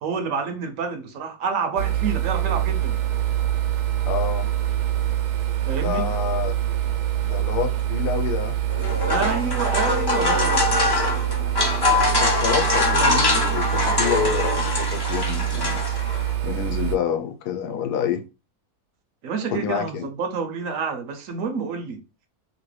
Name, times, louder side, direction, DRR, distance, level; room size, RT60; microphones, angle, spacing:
voice 1, 0.0-3.0 5.6-6.1 9.1-10.7 19.2-22.0, right 5 dB, 70° right, 0.9 m, -28 dB
sound 1, 1.8-17.0, right 12 dB, 85° right, 1.2 m, -25 dB
voice 2, 4.1-4.5 5.8-6.5 7.2-8.6 11.8-15.8 16.4-18.2 19.5-20.1, left 8 dB, 85° left, 1.1 m, -28 dB
sound 2, 8.7-16.3, left 2 dB, 35° left, 0.3 m, -23 dB
2.9 x 2.7 x 3.1 m
omnidirectional pair, 1.6 m